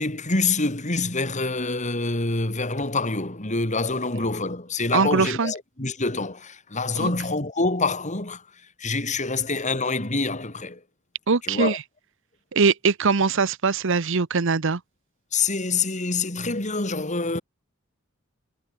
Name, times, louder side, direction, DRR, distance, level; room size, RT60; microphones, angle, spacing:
voice 1, 0.0-8.4 8.8-10.8 11.4-11.8 15.3-17.4, left 3 dB, 35° left, 3.5 m, -26 dB
voice 2, 4.9-5.5 7.0-7.1 11.3-11.8 12.5-14.8, right 4 dB, 65° right, 0.9 m, -22 dB
head